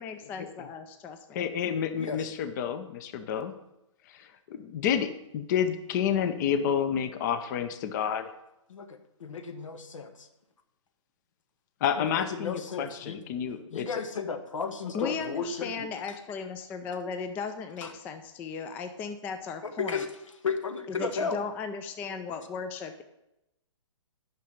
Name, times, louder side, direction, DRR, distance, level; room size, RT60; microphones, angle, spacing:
voice 1, 0.0-1.5 14.9-20.1 20.9-23.0, left 5 dB, 10° left, 8 dB, 0.3 m, -36 dB
voice 2, 1.3-3.5 4.1-8.3 11.8-13.9, left 8 dB, 35° left, 10 dB, 0.7 m, -29 dB
voice 3, 2.0-2.3 8.7-10.3 12.0-13.2 13.7-15.9 17.8-17.9 19.6-20.1 20.4-21.5, left 5 dB, 80° left, 8 dB, 1.2 m, -34 dB
9.5 x 5.9 x 5.1 m, 0.88 s
hypercardioid pair, 145°, 16 cm